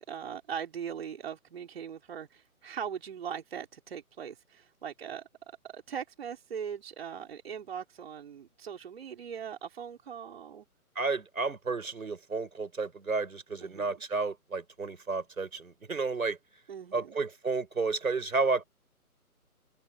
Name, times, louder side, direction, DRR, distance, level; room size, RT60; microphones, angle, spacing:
voice 1, 0.1-10.6 13.6-14.0 16.7-17.1, right 8 dB, 40° right, 3.8 m, -40 dB
voice 2, 10.9-16.4 16.9-18.6, right 4 dB, 65° right, 6.8 m, -31 dB
figure-of-eight pair, 145°, 45 cm